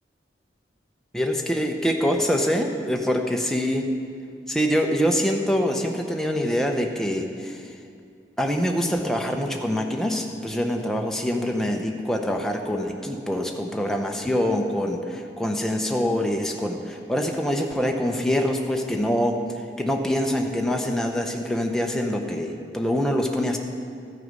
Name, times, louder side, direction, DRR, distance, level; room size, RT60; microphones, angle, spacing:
voice 1, 1.1-3.9 4.5-7.7 8.4-19.4 19.8-23.6, equal, 5° left, 2 dB, 0.7 m, -25 dB
13.5 x 6.6 x 5.3 m, 2.3 s
head